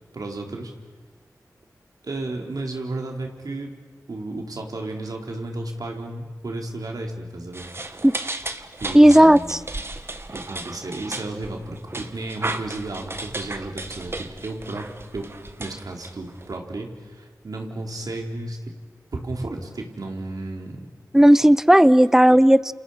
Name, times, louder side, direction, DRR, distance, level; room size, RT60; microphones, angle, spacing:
voice 1, 0.1-0.7 2.0-3.7 4.1-7.7 8.8-9.7 10.3-15.3 15.6-18.8 19.1-20.8 22.3-22.4, right 2 dB, 75° right, 2 dB, 3.9 m, -33 dB
sound 1, 7.5-16.5, right 2 dB, 40° right, 1.6 m, -35 dB
voice 2, 8.9-9.6 21.1-22.7, equal, 5° right, 17 dB, 0.7 m, -13 dB
30.0 x 28.5 x 5.7 m, 1.4 s
cardioid pair, 45°, 6 cm